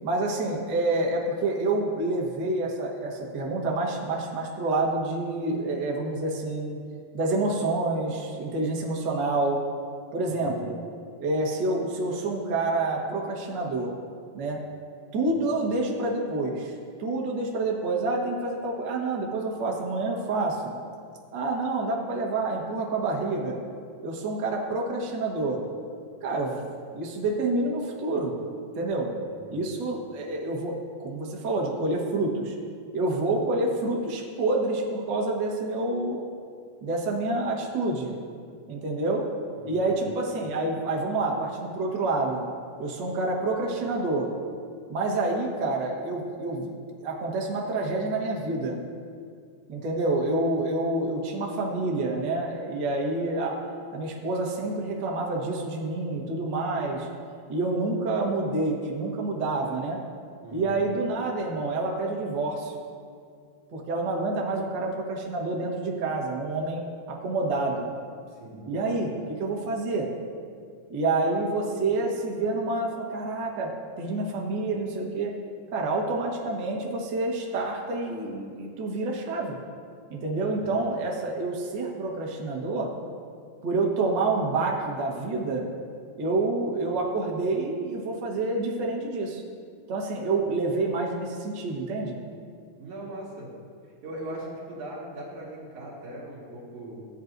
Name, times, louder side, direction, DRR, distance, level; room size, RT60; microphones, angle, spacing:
voice 1, 0.0-6.8 7.1-9.6 10.1-10.8 11.2-13.9 14.3-14.6 15.1-16.7 17.0-20.7 21.3-23.6 24.0-25.6 26.2-26.7 26.9-28.4 28.7-29.1 29.5-32.5 32.9-36.2 36.8-38.2 38.7-39.2 39.6-42.4 42.8-44.3 44.9-46.7 47.0-48.8 49.7-53.6 53.9-57.1 57.5-60.0 60.5-62.7 63.7-66.8 67.1-67.9 68.6-70.1 70.9-75.3 75.7-79.6 80.1-82.9 83.6-85.7 86.2-89.4 89.9-92.2, right 2 dB, 50° right, -1 dB, 1.4 m, -28 dB
voice 2, 10.2-10.7 15.4-15.5 29.3-29.6 39.6-39.9 60.4-60.8 68.3-68.6 80.5-80.6 92.8-93.5 93.8-97.0, right 1 dB, 65° right, -5 dB, 3.2 m, -40 dB
16.5 x 8.6 x 2.6 m, 2.2 s
omnidirectional pair, 3.7 m